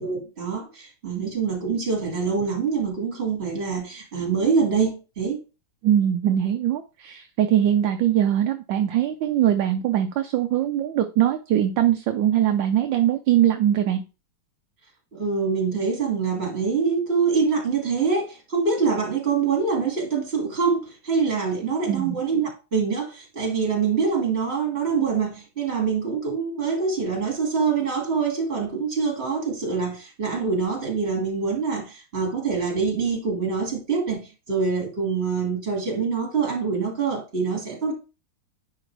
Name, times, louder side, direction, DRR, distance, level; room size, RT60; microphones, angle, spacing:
voice 1, 0.0-5.4 15.1-37.9, right 5 dB, 30° right, 2.3 m, -25 dB
voice 2, 5.8-14.0 21.9-22.1, right 11 dB, 75° right, 1.2 m, -21 dB
10.0 x 3.9 x 3.3 m
omnidirectional pair, 2.3 m